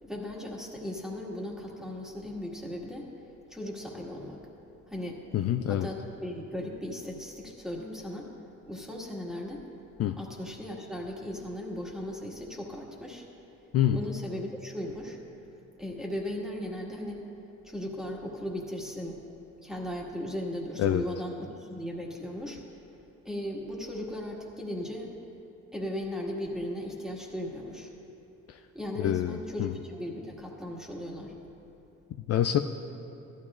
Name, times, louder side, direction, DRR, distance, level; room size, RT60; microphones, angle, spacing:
voice 1, 0.0-3.1 3.5-4.4 4.9-5.2 5.7-8.3 8.7-9.6 10.2-13.2 13.9-15.2 15.8-17.3 17.6-19.2 19.6-22.6 23.2-25.1 25.7-27.9 28.7-31.3, left 1 dB, ahead, -2 dB, 1.8 m, -37 dB
voice 2, 5.3-5.9 10.0-10.2 13.7-14.0 20.8-21.0 28.5-28.6 29.0-29.8 32.3-32.6, left 11 dB, 55° left, 7 dB, 0.4 m, -26 dB
15.0 x 12.5 x 2.5 m, 2.9 s
cardioid pair, 90°, 30 cm